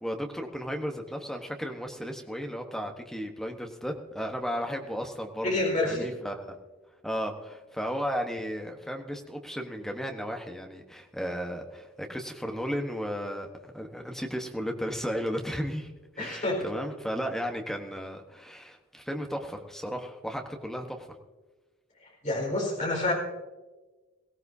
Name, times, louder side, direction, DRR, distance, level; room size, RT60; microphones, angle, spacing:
voice 1, 0.0-5.5 5.8-6.6 7.0-21.1, equal, ahead, 3 dB, 1.1 m, -34 dB
voice 2, 5.4-6.1 16.2-16.6 22.2-23.1, left 2 dB, 35° left, -2 dB, 4.4 m, -28 dB
22.0 x 16.0 x 2.7 m, 1.2 s
head